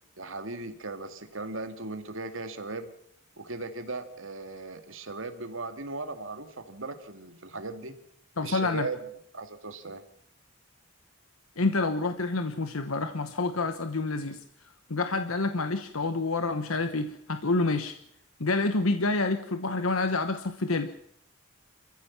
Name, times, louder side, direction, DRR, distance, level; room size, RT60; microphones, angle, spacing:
voice 1, 0.2-2.9 3.4-8.0 8.4-9.0 9.3-10.0, right 3 dB, 70° right, 8 dB, 2.2 m, -37 dB
voice 2, 8.4-8.9 11.6-14.4 14.9-17.9 18.4-20.9, left 3 dB, 90° left, 9 dB, 1.2 m, -28 dB
27.0 x 15.0 x 7.3 m, 0.73 s
head